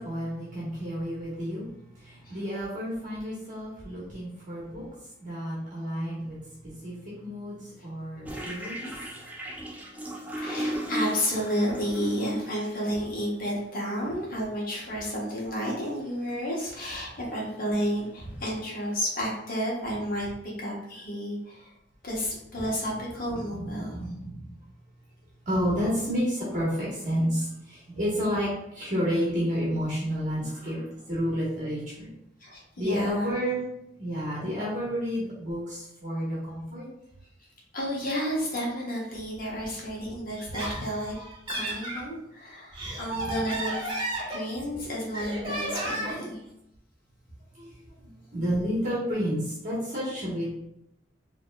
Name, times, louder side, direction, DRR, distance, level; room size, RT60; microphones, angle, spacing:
voice 1, 0.0-1.6 1.9-4.8 5.2-6.4 6.6-8.9 23.6-24.4 25.4-32.1 32.8-36.8 47.5-47.7 48.0-50.5, equal, 45° right, -7 dB, 1.3 m, -30 dB
sound 1, 8.2-12.8 13.8-13.9 14.4-14.5 14.8-15.2 15.6-16.0 16.3-18.7, equal, 10° right, 0.5 m, -35 dB
voice 2, 10.4-20.3 20.6-21.7 22.0-24.1 32.4-33.3 37.7-41.1 41.5-43.9 44.3-46.4, equal, 50° left, -4 dB, 1.3 m, -31 dB
Laughter, 40.3-42.0 42.6-44.8 45.1-46.3, right 1 dB, 30° right, 1.2 m, -33 dB
5.0 x 3.0 x 2.3 m, 0.80 s
head